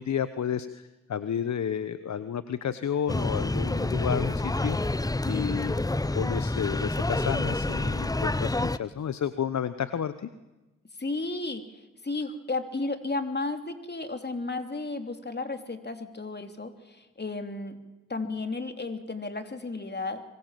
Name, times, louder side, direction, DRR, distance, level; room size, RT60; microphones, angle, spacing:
voice 1, 0.0-5.7 6.1-10.3, left 8 dB, 60° left, 13 dB, 1.1 m, -31 dB
sound 1, 3.1-8.8, left 2 dB, 10° left, 0.8 m, -28 dB
voice 2, 11.0-17.8 18.1-20.2, left 3 dB, 30° left, 7 dB, 3.1 m, -33 dB
24.5 x 22.0 x 7.6 m, 1.1 s
hypercardioid pair, 40°, 32 cm